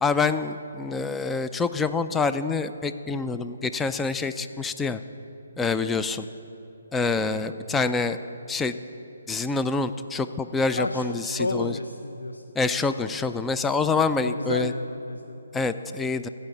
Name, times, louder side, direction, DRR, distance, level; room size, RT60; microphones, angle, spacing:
voice 1, 0.0-5.0 5.6-6.3 6.9-8.2 8.5-8.8 9.3-11.8 12.6-14.7 15.5-16.3, left 4 dB, 10° left, 11 dB, 0.4 m, -26 dB
voice 2, 10.8-12.4 14.2-15.5, left 2 dB, 90° left, 8 dB, 0.5 m, -31 dB
16.0 x 5.5 x 7.1 m, 3.0 s
figure-of-eight pair, 145°, 0 cm